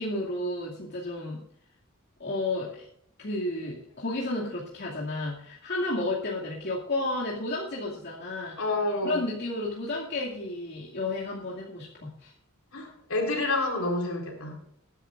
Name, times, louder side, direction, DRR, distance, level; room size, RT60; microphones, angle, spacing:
voice 1, 0.0-1.4 2.2-2.9 3.2-8.6 9.0-12.3, left 2 dB, 55° left, -4 dB, 2.5 m, -32 dB
voice 2, 8.6-9.2 12.7-14.6, left 2 dB, 75° left, 1 dB, 4.2 m, -28 dB
21.0 x 10.0 x 2.5 m, 0.71 s
head